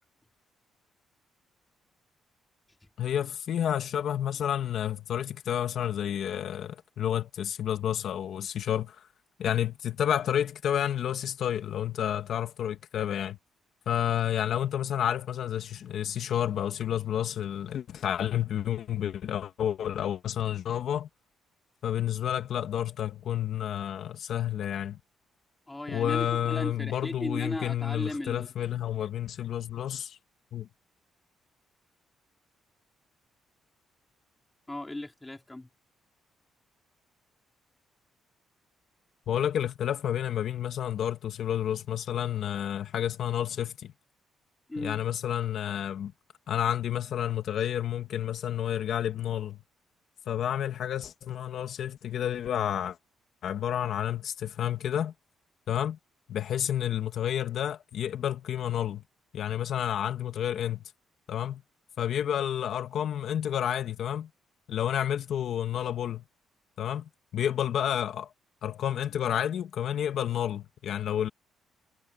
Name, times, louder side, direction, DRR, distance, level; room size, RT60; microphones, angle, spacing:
voice 1, 3.0-9.0 9.4-13.4 13.9-21.1 21.8-25.0 25.9-30.2 30.5-30.7 39.3-43.9 44.8-46.1 46.5-49.6 50.3-53.0 53.4-55.1 55.7-56.0 56.3-59.0 59.3-60.8 61.3-61.6 62.0-64.3 64.7-66.2 66.8-68.3 68.6-71.3, left 10 dB, 70° left, 2.0 m, -30 dB
voice 2, 25.7-28.8 34.7-35.7 44.7-45.0, left 2 dB, 15° left, 3.6 m, -36 dB
cardioid pair, 90°, 0 cm